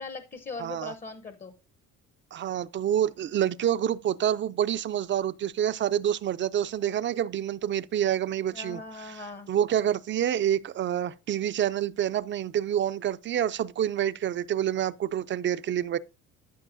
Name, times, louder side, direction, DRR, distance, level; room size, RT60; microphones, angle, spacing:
voice 1, 0.0-1.5 8.5-9.5, left 3 dB, 25° left, 0.8 m, -40 dB
voice 2, 0.6-0.9 2.3-9.2 9.5-16.0, right 10 dB, 40° right, 0.4 m, -27 dB
13.0 x 5.3 x 2.6 m
cardioid pair, 95°, 30 cm